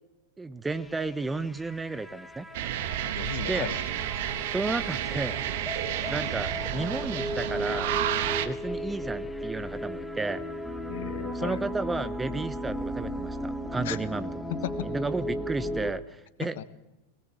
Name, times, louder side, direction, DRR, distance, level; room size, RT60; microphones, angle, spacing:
voice 1, 0.4-2.4 3.5-3.7 4.5-5.4 6.1-8.0 8.4-10.4 11.3-14.3 14.8-16.6, right 3 dB, 10° right, 13 dB, 0.8 m, -32 dB
sound 1, 0.7-15.9, equal, 5° left, 1.4 m, -36 dB
sound 2, 2.5-8.5, right 11 dB, 50° right, 1.3 m, -31 dB
voice 2, 3.1-3.8 4.2-4.4 10.9-11.6 13.8-14.0 14.5-14.9 16.4-16.6, left 11 dB, 55° left, 14 dB, 1.3 m, -36 dB
22.5 x 19.0 x 7.4 m, 1.0 s
figure-of-eight pair, 90°, 0 cm